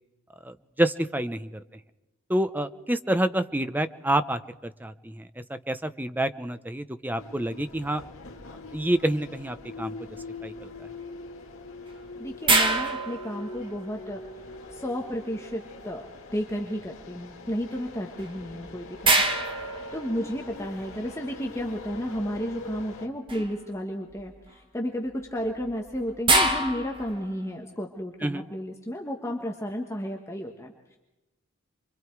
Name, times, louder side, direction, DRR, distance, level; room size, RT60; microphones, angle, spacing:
voice 1, 0.4-1.6 2.3-8.0 8.7-10.0 10.4-10.9 28.2-28.4, right 1 dB, 10° right, 11 dB, 0.7 m, -28 dB
sound 1, 7.2-23.1, left 3 dB, 75° left, 2.1 m, -43 dB
voice 2, 12.1-14.2 14.7-16.0 16.3-19.1 19.5-19.6 19.9-31.0, equal, 15° left, 1 dB, 1.5 m, -32 dB
sound 2, 12.5-14.0 18.2-18.3 19.0-20.6 23.3-23.6 24.1-24.5 25.4-27.3, right 2 dB, 25° right, 1.6 m, -25 dB
28.0 x 23.5 x 4.7 m, 0.98 s
head